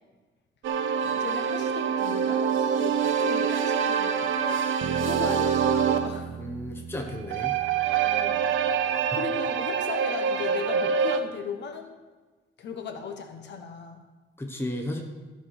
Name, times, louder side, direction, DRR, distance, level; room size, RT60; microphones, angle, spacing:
sound 1, 0.6-6.2 7.1-11.2, right 7 dB, 85° right, 0.7 m, -25 dB
voice 1, 1.0-6.4 8.0-8.6 9.1-12.0 12.6-14.0, left 6 dB, 65° left, 5 dB, 1.3 m, -37 dB
Bass guitar, 4.8-9.2, right 9 dB, 45° right, 0.4 m, -39 dB
voice 2, 6.3-7.6 14.4-15.0, left 1 dB, 10° left, 2 dB, 1.1 m, -34 dB
14.0 x 4.9 x 6.1 m, 1.3 s
cardioid pair, 150°, 20 cm